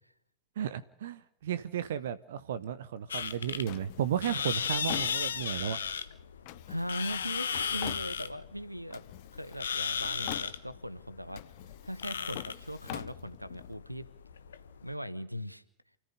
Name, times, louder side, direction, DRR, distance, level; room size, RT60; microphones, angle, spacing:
voice 1, 0.6-5.8, right 9 dB, 60° right, 14 dB, 0.9 m, -34 dB
sound 1, 3.1-14.9, left 7 dB, 70° left, 1.2 m, -36 dB
Drawer open or close, 3.7-5.7 6.5-8.5 8.9-9.7 10.0-10.9 11.3-13.7, left 18 dB, 45° left, 0.9 m, -45 dB
voice 2, 6.7-9.1 9.3-14.1 14.8-15.6, equal, 90° right, 19 dB, 1.2 m, -39 dB
29.0 x 14.5 x 6.7 m, 0.71 s
figure-of-eight pair, 90°, 0 cm